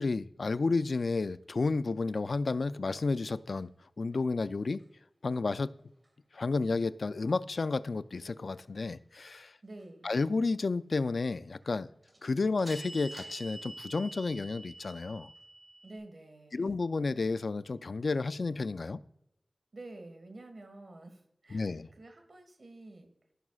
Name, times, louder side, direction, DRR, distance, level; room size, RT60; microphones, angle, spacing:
voice 1, 0.0-3.7 4.0-4.8 5.2-5.7 6.3-9.6 10.0-11.9 12.2-15.3 16.5-19.0 21.5-21.9, left 3 dB, 75° left, 0.3 m, -31 dB
sound 1, 1.7-1.8 12.0-16.0, right 2 dB, 45° right, 2.5 m, -47 dB
voice 2, 9.6-10.1 15.8-16.7 19.7-23.1, right 2 dB, 65° right, 1.6 m, -49 dB
14.5 x 6.1 x 2.4 m
wide cardioid pair, 80°, 0 cm